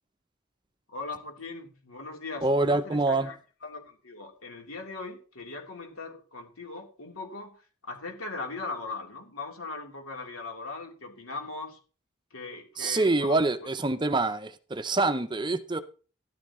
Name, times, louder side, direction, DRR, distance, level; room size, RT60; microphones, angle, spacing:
voice 1, 0.9-3.4 3.6-11.8 12.3-13.7, left 3 dB, 85° left, 3.6 m, -39 dB
voice 2, 2.4-3.3 12.8-15.8, right 2 dB, 20° right, 0.6 m, -26 dB
14.0 x 12.0 x 3.1 m
head